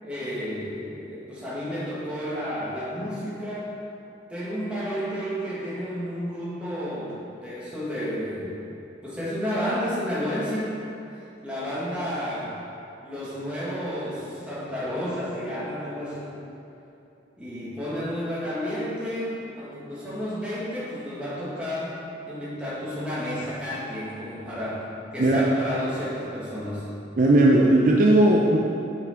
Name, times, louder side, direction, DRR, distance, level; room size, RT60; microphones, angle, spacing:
voice 1, 0.0-3.7 4.3-8.6 9.0-10.8 11.1-12.6 13.0-16.3 17.4-24.9 25.1-26.8, equal, 5° right, -9 dB, 1.6 m, -31 dB
voice 2, 27.2-28.6, right 1 dB, 45° right, -2 dB, 0.4 m, -17 dB
5.9 x 5.7 x 4.5 m, 2.9 s
head